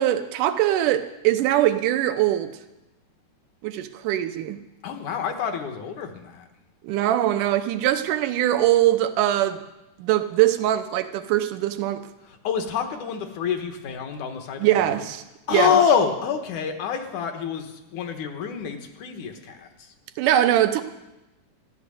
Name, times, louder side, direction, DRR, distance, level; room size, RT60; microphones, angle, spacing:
voice 1, 0.0-2.5 3.6-4.6 6.8-9.6 10.0-12.0 14.6-15.2 15.5-15.7 20.2-20.8, right 13 dB, 80° right, 9 dB, 2.4 m, -22 dB
voice 2, 4.8-6.5 12.2-15.1 15.5-19.9, left 7 dB, 70° left, 6 dB, 2.8 m, -27 dB
14.5 x 11.5 x 7.6 m, 0.97 s
omnidirectional pair, 3.6 m